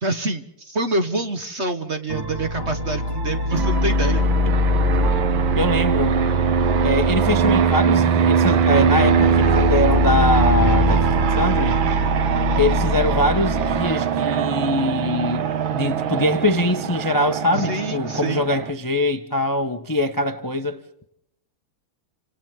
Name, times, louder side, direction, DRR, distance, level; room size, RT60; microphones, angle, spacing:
voice 1, 0.0-4.2 17.5-18.5, right 2 dB, 40° right, 1.2 m, -26 dB
sound 1, 2.1-13.8, left 2 dB, 20° right, 0.7 m, -23 dB
Fixed-wing aircraft airplane, 3.5-18.7, right 7 dB, 70° right, 1.7 m, -22 dB
voice 2, 5.5-6.2 6.8-11.8 12.6-21.0, left 1 dB, 20° left, 0.5 m, -23 dB
30.0 x 26.0 x 3.7 m
omnidirectional pair, 2.3 m